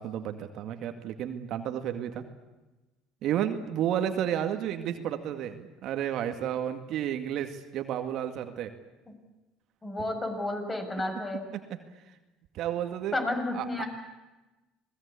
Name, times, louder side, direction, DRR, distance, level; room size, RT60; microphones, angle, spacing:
voice 1, 0.0-2.2 3.2-8.7 11.5-11.8 12.5-13.2 13.5-13.8, right 10 dB, 60° right, 7 dB, 2.1 m, -32 dB
voice 2, 9.8-11.4 13.1-13.8, left 2 dB, 20° left, 5 dB, 6.9 m, -31 dB
27.5 x 19.5 x 8.4 m, 1.1 s
hypercardioid pair, 80°, 0 cm